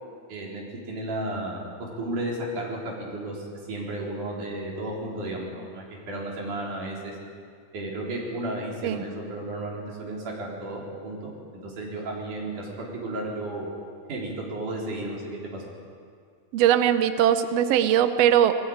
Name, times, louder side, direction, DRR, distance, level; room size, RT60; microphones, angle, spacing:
voice 1, 0.3-7.1 7.7-13.7 14.1-15.5, right 1 dB, 60° right, -3 dB, 5.3 m, -33 dB
voice 2, 16.5-18.6, right 10 dB, 80° right, 9 dB, 1.4 m, -20 dB
20.5 x 16.5 x 8.8 m, 2.2 s
omnidirectional pair, 4.1 m